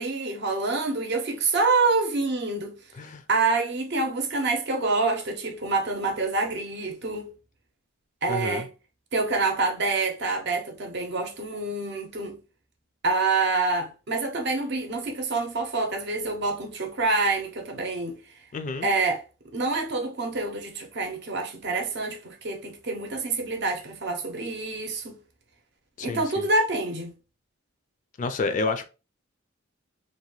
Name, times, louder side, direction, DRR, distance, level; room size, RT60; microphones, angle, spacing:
voice 1, 0.0-2.8 3.3-7.3 8.2-8.7 9.1-12.4 13.0-18.2 18.8-19.2 19.5-25.2 26.0-27.1, right 3 dB, 55° right, 0.7 m, -27 dB
voice 2, 8.3-8.7 18.5-18.9 26.0-26.5 28.2-28.8, left 3 dB, 40° left, 0.3 m, -29 dB
2.7 x 2.2 x 3.0 m
head